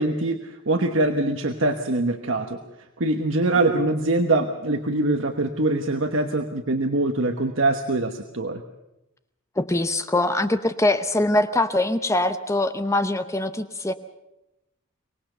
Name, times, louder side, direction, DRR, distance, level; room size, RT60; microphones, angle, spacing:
voice 1, 0.0-2.6 3.0-8.6, right 2 dB, 60° right, 6 dB, 1.2 m, -23 dB
voice 2, 9.6-13.9, left 2 dB, 15° left, 10 dB, 0.7 m, -23 dB
24.5 x 19.5 x 6.8 m, 0.92 s
head